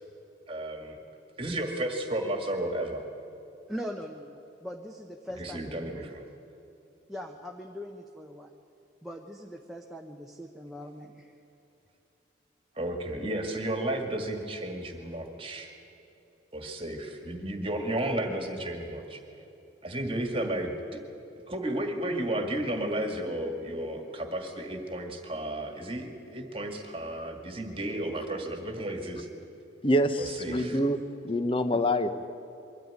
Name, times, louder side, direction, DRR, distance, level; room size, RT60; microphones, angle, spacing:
voice 1, 0.5-1.0 1.4-3.0 5.4-6.2 12.8-15.7 16.5-19.2 19.8-21.0 21.5-29.3 30.2-30.8, right 1 dB, 30° right, 4 dB, 1.9 m, -33 dB
voice 2, 3.7-6.1 7.1-8.5 9.0-11.3, equal, ahead, 1 dB, 0.9 m, -41 dB
voice 3, 29.8-31.0 31.2-32.1, equal, 25° left, 9 dB, 1.0 m, -25 dB
23.0 x 13.5 x 9.6 m, 2.9 s
head